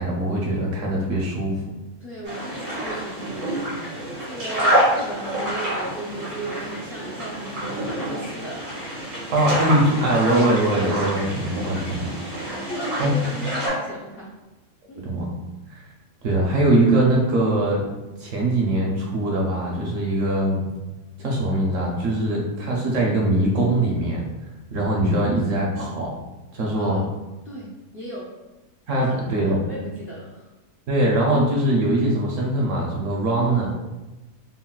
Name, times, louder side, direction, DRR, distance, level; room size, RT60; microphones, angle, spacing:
voice 1, 0.0-1.5 9.3-12.1 13.0-13.1 15.0-15.3 15.7-15.8 16.2-17.8 18.2-20.7 21.2-24.3 24.7-26.2 26.5-27.0 28.9-29.6 30.9-33.7, right 1 dB, 70° right, -2 dB, 0.8 m, -22 dB
voice 2, 2.0-8.7 9.3-9.4 12.6-14.3 14.9-15.0 26.7-27.1 27.4-27.7 27.9-28.2 29.3-30.5, right 1 dB, 75° left, -5 dB, 0.5 m, -36 dB
sound 1, 2.2-13.7, right 1 dB, 85° right, 1.9 m, -27 dB
3.8 x 2.0 x 2.2 m, 1.1 s
omnidirectional pair, 1.6 m